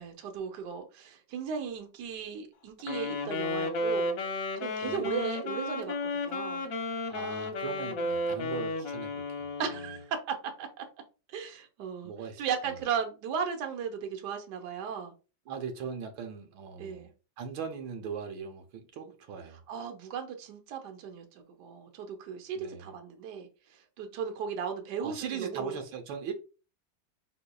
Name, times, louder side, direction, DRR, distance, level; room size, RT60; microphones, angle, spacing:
voice 1, 0.0-4.1 4.6-6.7 9.6-10.8 11.3-12.1 12.4-15.1 16.8-17.1 19.7-25.8, right 7 dB, 65° right, 1.4 m, -36 dB
Wind instrument woodwind instrument, 2.8-10.0, left 2 dB, 60° left, 1.0 m, -33 dB
voice 2, 7.1-9.5 12.0-12.4 15.5-17.1 17.4-19.6 22.5-22.8 25.0-26.3, right 6 dB, 90° right, 1.7 m, -39 dB
5.7 x 4.0 x 2.3 m
omnidirectional pair, 2.1 m